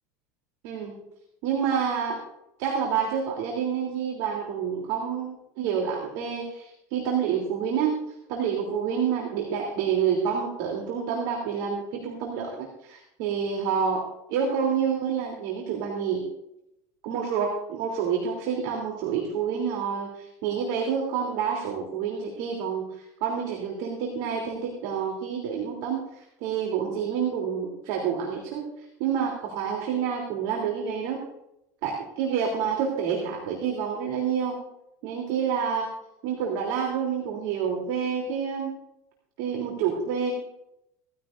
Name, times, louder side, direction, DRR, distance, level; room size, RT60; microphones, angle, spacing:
voice 1, 0.6-1.0 1.4-2.2 2.6-16.2 17.0-31.2 31.8-34.6 35.0-35.9 36.2-38.7 39.4-40.3, right 7 dB, 70° right, 1 dB, 3.3 m, -28 dB
19.5 x 15.0 x 2.6 m, 0.84 s
supercardioid pair, 105°, 8 cm